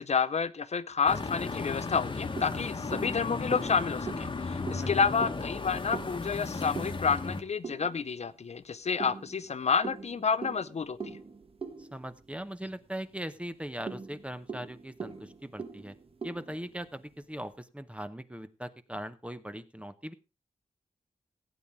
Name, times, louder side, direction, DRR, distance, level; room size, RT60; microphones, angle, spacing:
voice 1, 0.0-11.2, left 6 dB, 55° left, 14 dB, 0.6 m, -30 dB
sound 1, 1.1-7.4, left 3 dB, 35° left, 1.1 m, -35 dB
sound 2, 1.9-8.3 9.0-12.9 13.2-13.3 13.7-17.2, right 5 dB, 45° right, 1.3 m, -43 dB
voice 2, 11.8-15.9 16.2-20.1, equal, 10° right, 12 dB, 0.8 m, -40 dB
16.0 x 8.9 x 3.6 m, 0.28 s
wide cardioid pair, 105°, 14 cm